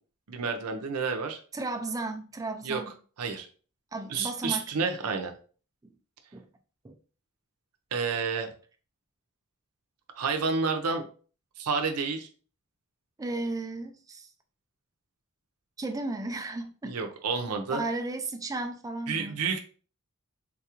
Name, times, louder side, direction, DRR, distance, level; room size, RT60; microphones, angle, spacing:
voice 1, 0.3-1.4 2.6-2.8 3.2-3.5 4.1-5.3 7.9-8.5 10.1-11.1 11.6-12.3 16.8-17.8 19.1-19.6, right 5 dB, 90° right, 0.6 m, -30 dB
voice 2, 1.5-2.9 3.9-4.7 5.8-5.9 6.3-6.5 6.8-6.9 13.2-14.3 15.8-17.0 17.7-19.4, right 2 dB, 15° right, 0.4 m, -34 dB
3.8 x 2.4 x 2.9 m
head